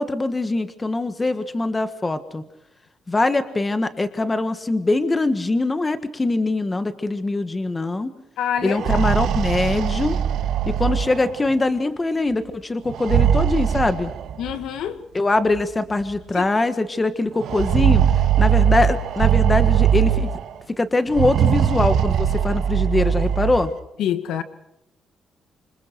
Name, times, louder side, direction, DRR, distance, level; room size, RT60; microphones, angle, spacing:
voice 1, 0.0-2.4 3.1-8.1 8.6-10.2 10.6-14.1 15.1-18.0 18.4-20.3 20.8-23.7, left 2 dB, 15° left, 10 dB, 1.5 m, -22 dB
voice 2, 8.4-8.8 14.4-15.0 16.4-16.5 24.0-24.4, left 9 dB, 80° left, 10 dB, 2.1 m, -25 dB
sound 1, 8.6-11.5 12.9-14.6 15.6-15.7 16.0-16.1 17.4-20.5 21.1-23.7, right 9 dB, 65° right, 1.9 m, -20 dB
28.5 x 26.0 x 4.6 m, 0.84 s
cardioid pair, 170°, 0 cm